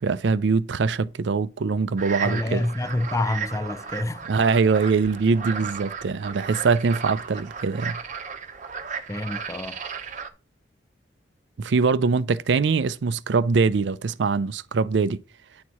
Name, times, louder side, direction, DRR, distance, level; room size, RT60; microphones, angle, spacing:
voice 1, 0.0-2.7 4.3-8.0 11.6-15.2, right 4 dB, 65° right, 0.4 m, -23 dB
sound 1, 2.0-10.3, right 6 dB, 40° right, 0.8 m, -35 dB
voice 2, 2.2-4.2 9.1-9.8, left 1 dB, 15° left, 0.4 m, -27 dB
9.4 x 4.6 x 4.2 m
head